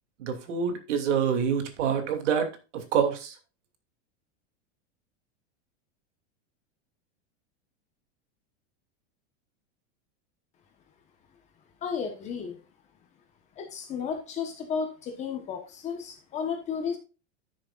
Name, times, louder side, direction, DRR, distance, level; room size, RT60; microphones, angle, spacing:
voice 1, 0.2-3.3, right 7 dB, 80° right, 6 dB, 2.7 m, -27 dB
voice 2, 11.8-12.6 13.6-17.0, left 6 dB, 20° left, 5 dB, 1.2 m, -33 dB
13.5 x 6.6 x 2.5 m, 0.32 s
supercardioid pair, 175°, 35 cm